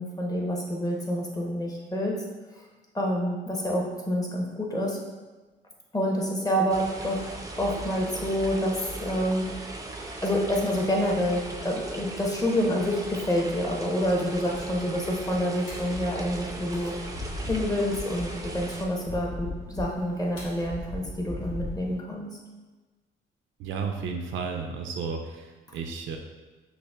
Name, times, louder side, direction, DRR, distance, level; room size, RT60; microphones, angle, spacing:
voice 1, 0.0-2.2 2.9-5.0 5.9-9.5 10.2-16.9 17.5-22.3, equal, 20° left, -1 dB, 0.7 m, -28 dB
sound 1, 6.7-18.9, right 2 dB, 15° right, 0.4 m, -38 dB
sound 2, 14.0-21.9, left 2 dB, 80° left, 1.1 m, -39 dB
voice 2, 23.6-26.2, right 5 dB, 75° right, 3 dB, 0.4 m, -33 dB
5.6 x 2.1 x 2.2 m, 1.3 s
cardioid pair, 90°, 20 cm